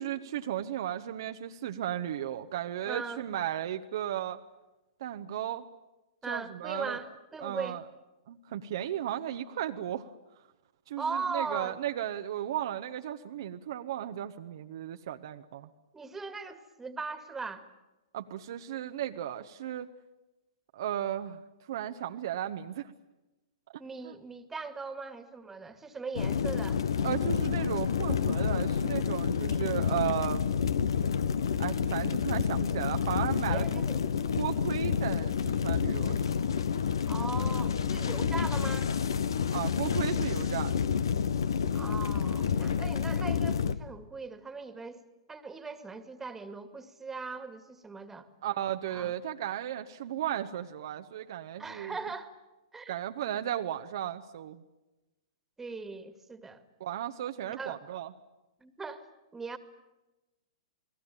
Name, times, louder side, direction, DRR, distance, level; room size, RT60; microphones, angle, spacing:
voice 1, 0.0-4.4 5.0-5.6 6.3-7.0 7.4-7.8 8.3-10.1 10.9-15.7 18.1-19.9 20.7-21.4 21.7-22.9 23.7-24.1 27.0-30.4 31.6-33.8 34.3-36.5 39.5-40.9 48.4-51.9 52.9-54.6 56.8-58.1, right 11 dB, 55° right, 7 dB, 1.1 m, -35 dB
voice 2, 2.9-3.2 6.2-7.8 11.0-11.8 15.9-17.7 23.8-26.8 33.5-34.0 37.1-38.9 41.7-45.0 45.3-48.3 48.9-49.1 51.6-52.3 52.7-53.0 55.6-56.6 57.6-57.8 58.6-59.0 59.3-59.6, right 4 dB, 10° right, 11 dB, 2.1 m, -39 dB
sound 1, 26.1-43.7, left 7 dB, 65° left, 1.3 m, -29 dB
29.0 x 20.0 x 9.0 m, 1.1 s
figure-of-eight pair, 105°, 3 cm